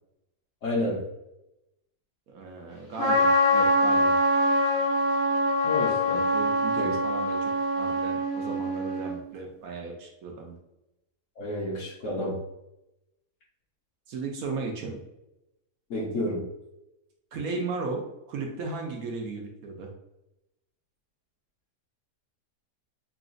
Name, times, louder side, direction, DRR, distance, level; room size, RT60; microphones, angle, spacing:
voice 1, 0.6-1.0 5.6-6.2 6.7-7.0 11.4-12.4 15.9-16.4, left 1 dB, 55° left, -2 dB, 1.1 m, -30 dB
voice 2, 2.3-4.2 6.3-6.7 7.0-10.6 14.1-15.0 17.3-18.0 18.3-19.9, right 4 dB, 70° right, 1 dB, 1.0 m, -36 dB
Trumpet, 3.0-9.2, equal, 70° left, 1.7 m, -24 dB
5.8 x 2.3 x 2.5 m, 0.91 s
omnidirectional pair, 1.7 m